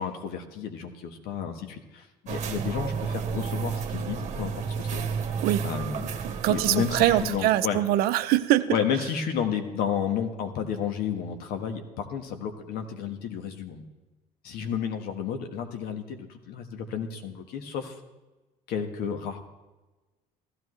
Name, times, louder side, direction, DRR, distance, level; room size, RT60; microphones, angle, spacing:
voice 1, 0.0-5.1 5.6-6.1 6.5-8.2 8.7-13.8 14.4-18.0 18.7-19.4, left 7 dB, 70° left, 6 dB, 1.5 m, -32 dB
sound 1, 2.3-7.4, right 6 dB, 45° right, 1.4 m, -31 dB
voice 2, 6.4-8.7, right 14 dB, 70° right, 11 dB, 0.7 m, -23 dB
15.5 x 12.5 x 3.2 m, 1.1 s
supercardioid pair, 85°, 16 cm